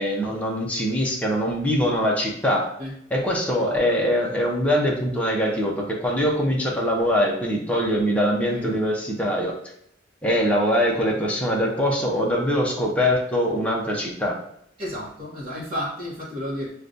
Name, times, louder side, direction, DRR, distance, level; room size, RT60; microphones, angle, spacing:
voice 1, 0.0-2.7 3.1-9.6 10.2-14.4, equal, 5° left, -1 dB, 0.6 m, -23 dB
voice 2, 8.5-8.8 14.8-16.7, equal, 35° right, -8 dB, 0.8 m, -32 dB
6.4 x 2.2 x 2.5 m, 0.74 s
head